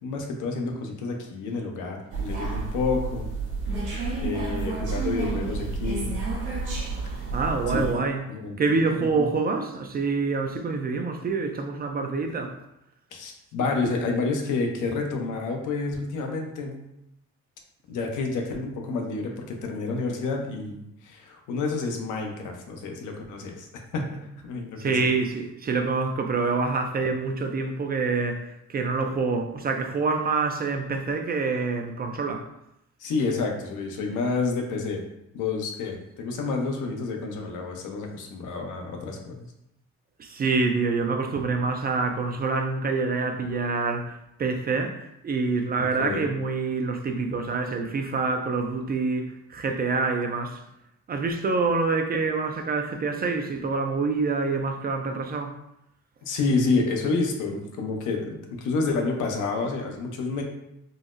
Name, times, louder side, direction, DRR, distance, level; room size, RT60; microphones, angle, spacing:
voice 1, 0.0-3.3 4.2-6.1 7.0-7.3 7.7-7.8 8.3-8.6 9.1-9.3 13.1-16.8 17.9-23.7 23.9-25.1 33.0-35.0 35.3-39.5 46.0-46.3 56.2-60.4, left 3 dB, 85° left, 2 dB, 0.6 m, -29 dB
sound 1, 2.1-7.9, right 3 dB, 80° right, 1.0 m, -30 dB
voice 2, 7.3-8.2 8.6-12.5 24.8-28.4 28.7-32.4 40.2-44.1 44.4-50.6 51.1-55.5, right 4 dB, 30° right, 4 dB, 0.4 m, -26 dB
3.9 x 2.0 x 2.4 m, 0.83 s
cardioid pair, 90°, 30 cm